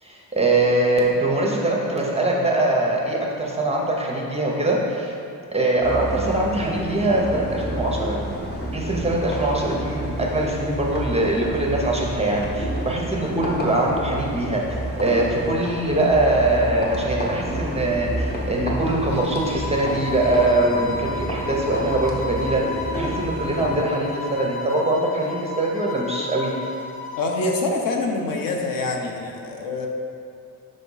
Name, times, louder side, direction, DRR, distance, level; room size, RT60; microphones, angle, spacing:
voice 1, 0.0-5.1 5.5-8.2 8.7-22.6 22.9-26.5, right 2 dB, 15° right, -2 dB, 0.5 m, -22 dB
sound 1, 5.8-23.8, equal, 25° left, 0.8 m, -30 dB
sound 2, 19.1-27.5, left 4 dB, 85° left, 1.0 m, -33 dB
voice 2, 27.2-29.9, left 2 dB, 60° left, 2 dB, 0.7 m, -25 dB
5.3 x 3.5 x 5.4 m, 2.5 s
wide cardioid pair, 170°, 37 cm